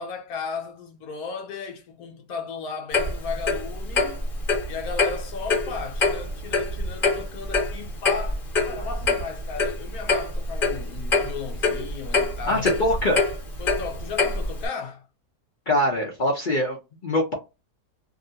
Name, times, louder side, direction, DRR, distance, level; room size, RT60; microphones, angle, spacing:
voice 1, 0.0-4.2 4.7-12.9 13.6-15.1, left 5 dB, 70° left, 1.0 m, -35 dB
Clock, 2.9-14.7, left 3 dB, 35° left, 1.3 m, -25 dB
voice 2, 12.5-13.2 15.7-17.3, left 1 dB, 55° left, 0.5 m, -23 dB
2.8 x 2.5 x 2.7 m
omnidirectional pair, 1.7 m